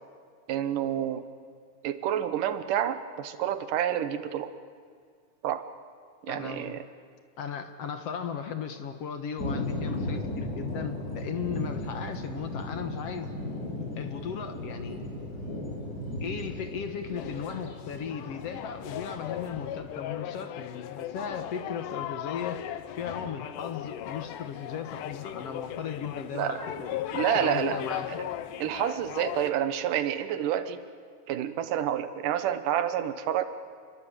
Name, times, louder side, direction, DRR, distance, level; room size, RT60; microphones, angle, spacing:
voice 1, 0.5-1.2 1.8-4.5 5.4-5.7 6.2-6.9 26.3-26.7 27.1-27.8 28.6-30.8 31.3-33.4, right 10 dB, 85° right, 11 dB, 2.7 m, -29 dB
voice 2, 6.3-6.8 7.4-13.3 13.9-15.1 16.2-22.6 23.0-28.2, left 7 dB, 55° left, 8 dB, 2.2 m, -36 dB
sound 1, 9.4-19.6, left 1 dB, 30° left, 5.6 m, -36 dB
sound 2, 17.2-29.5, left 12 dB, 85° left, 2.6 m, -37 dB
28.5 x 23.0 x 8.8 m, 2.1 s
omnidirectional pair, 3.6 m